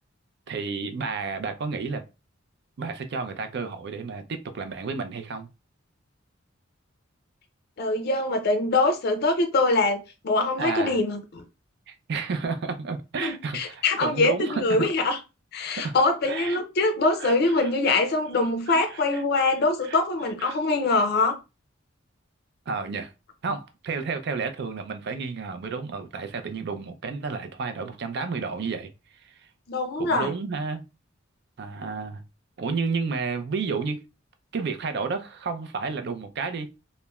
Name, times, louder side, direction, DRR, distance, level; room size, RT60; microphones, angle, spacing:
voice 1, 0.5-2.0 2.8-5.5 10.6-11.0 11.9-14.9 15.8-15.9 16.3-16.6 17.2-18.0 18.7-19.2 19.8-20.0 20.4-20.6 22.7-23.1 23.4-28.9 29.2-29.4 30.0-30.8 31.6-32.2 32.6-34.0 34.5-36.7, right 4 dB, 60° right, 0.4 m, -31 dB
voice 2, 7.8-11.4 13.2-15.2 15.5-21.4 29.7-30.3, left 2 dB, 55° left, 0.4 m, -23 dB
3.0 x 2.1 x 2.3 m
head